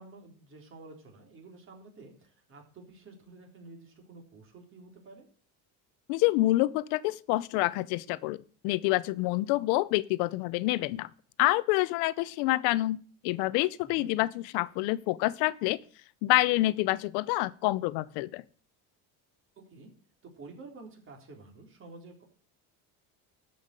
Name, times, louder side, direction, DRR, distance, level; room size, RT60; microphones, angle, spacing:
voice 1, 0.0-5.3 13.8-14.1 19.6-19.9 20.2-22.2, right 3 dB, 35° right, 3.7 m, -50 dB
voice 2, 6.1-11.1 11.4-15.8 16.2-18.4, left 18 dB, 80° left, 0.7 m, -27 dB
13.0 x 5.7 x 8.9 m
cardioid pair, 150°, 38 cm